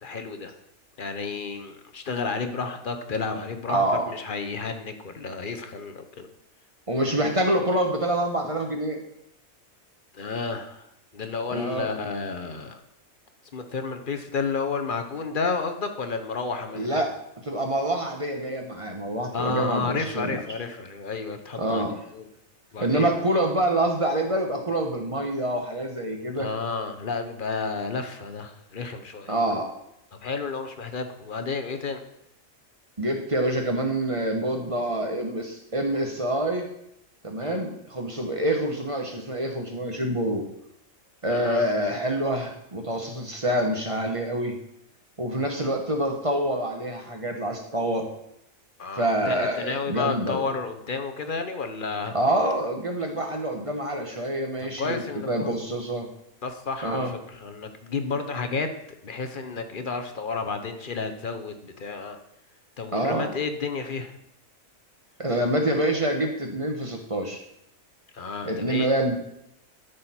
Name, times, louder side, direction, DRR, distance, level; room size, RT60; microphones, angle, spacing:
voice 1, 0.0-0.5 1.0-6.3 10.1-10.9 11.1-12.8 13.5-17.0 19.3-21.8 22.1-22.3 22.7-23.1 26.4-29.3 30.2-32.0 37.4-37.6 41.3-41.7 45.6-45.7 48.8-52.1 54.6-55.5 56.4-58.7 59.0-62.2 62.8-64.1 68.1-69.0, left 4 dB, 40° left, 7 dB, 1.0 m, -31 dB
voice 2, 3.7-4.1 6.9-9.0 11.5-11.9 16.7-17.1 17.4-20.4 21.6-21.9 22.8-26.5 29.3-29.7 33.0-36.6 37.2-40.4 41.2-44.5 45.2-48.1 49.0-50.5 52.1-56.1 56.8-57.1 62.9-63.3 65.2-67.4 68.5-69.1, right 1 dB, 25° right, 3 dB, 1.1 m, -26 dB
13.5 x 6.2 x 4.3 m, 0.79 s
omnidirectional pair, 1.4 m